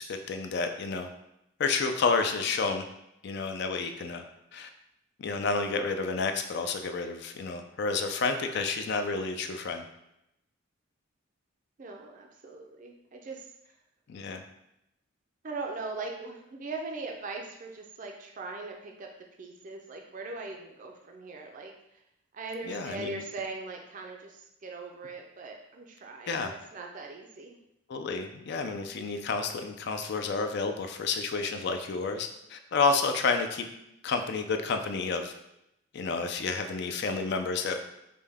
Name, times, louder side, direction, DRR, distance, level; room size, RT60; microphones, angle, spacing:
voice 1, 0.1-1.1 1.6-2.8 3.2-4.2 4.5-4.7 5.2-9.8 14.1-14.4 22.6-23.2 26.3-26.5 27.9-33.6 34.0-35.3 35.9-37.8, left 4 dB, 55° left, 6 dB, 0.4 m, -30 dB
voice 2, 11.8-13.4 15.4-19.1 19.4-21.7 22.3-27.6, right 3 dB, 40° right, 2 dB, 0.4 m, -40 dB
5.2 x 2.2 x 3.4 m, 0.83 s
head